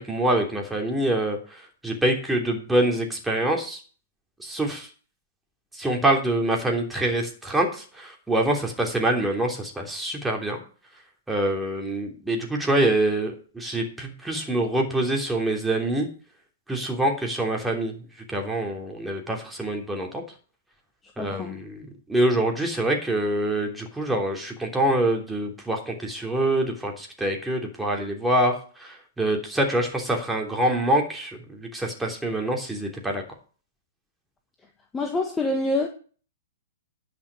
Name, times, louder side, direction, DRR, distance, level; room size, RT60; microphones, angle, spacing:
voice 1, 0.0-3.8 4.4-4.9 5.7-10.6 11.3-16.1 16.7-17.9 18.3-20.2 21.2-33.2, right 1 dB, 5° right, 3.1 m, -25 dB
voice 2, 21.2-21.6 34.9-35.9, left 2 dB, 15° left, 1.5 m, -26 dB
10.5 x 6.0 x 8.6 m
figure-of-eight pair, 115°, 0 cm